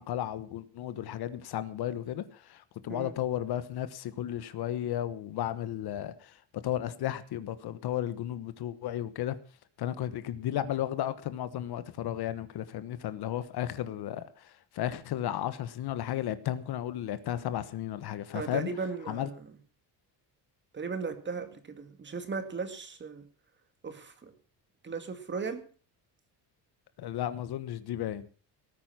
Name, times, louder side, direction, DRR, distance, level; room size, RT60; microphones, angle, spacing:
voice 1, 0.0-9.4 9.8-18.7 19.1-19.3 27.0-28.3, left 11 dB, 65° left, 13 dB, 1.3 m, -34 dB
voice 2, 18.3-19.4 20.7-23.2 23.8-24.3 24.8-25.6, right 4 dB, 25° right, 8 dB, 2.2 m, -36 dB
18.5 x 9.4 x 5.8 m, 0.39 s
cardioid pair, 155°, 41 cm